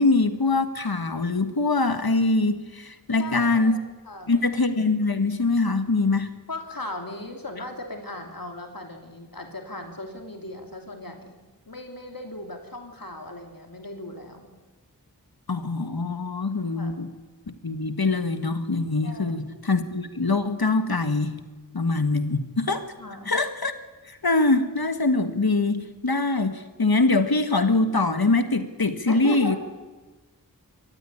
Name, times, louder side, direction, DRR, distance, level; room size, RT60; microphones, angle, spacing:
voice 1, 0.0-3.8 4.3-6.3 15.5-17.1 17.6-21.4 21.7-22.9 23.2-23.7 24.1-29.6, left 3 dB, 85° left, 9 dB, 1.7 m, -23 dB
voice 2, 3.2-3.8 4.0-4.4 6.5-14.6 16.8-17.0 19.0-19.5 23.0-23.3 29.1-29.6, left 1 dB, 70° left, 3 dB, 2.8 m, -37 dB
22.5 x 14.5 x 10.0 m, 1.2 s
wide cardioid pair, 40°, 36 cm